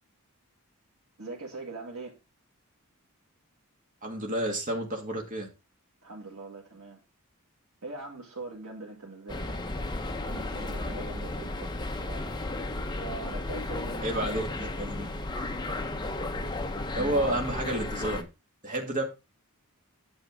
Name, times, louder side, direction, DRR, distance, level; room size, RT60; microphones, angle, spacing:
voice 1, 1.2-2.2 6.0-7.0 7.8-9.8 10.2-12.4 13.0-14.2, right 3 dB, 80° right, 2.1 m, -42 dB
voice 2, 4.0-5.5 14.0-15.1 16.9-18.3 18.6-19.0, right 1 dB, 35° right, 2.1 m, -30 dB
sound 1, 9.3-18.2, left 2 dB, 20° left, 0.9 m, -34 dB
9.0 x 6.3 x 3.7 m
head